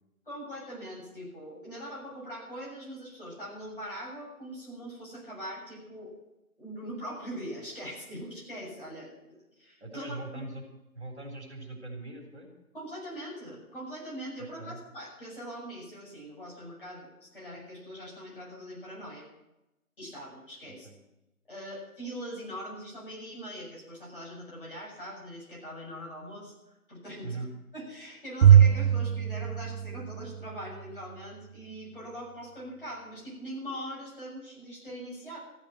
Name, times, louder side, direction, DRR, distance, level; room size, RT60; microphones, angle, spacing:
voice 1, 0.3-6.1 6.6-9.1 9.6-10.4 12.7-19.3 20.0-20.9 21.5-27.4 27.7-35.4, equal, 35° left, -5 dB, 7.1 m, -42 dB
voice 2, 9.8-10.6 10.9-12.5 14.6-14.8 20.7-20.9 27.2-27.5, right 2 dB, 50° right, 2 dB, 3.6 m, -40 dB
Bowed string instrument, 28.4-30.8, right 9 dB, 80° right, 0.5 m, -21 dB
14.5 x 8.6 x 9.0 m, 0.92 s
figure-of-eight pair, 175°, 44 cm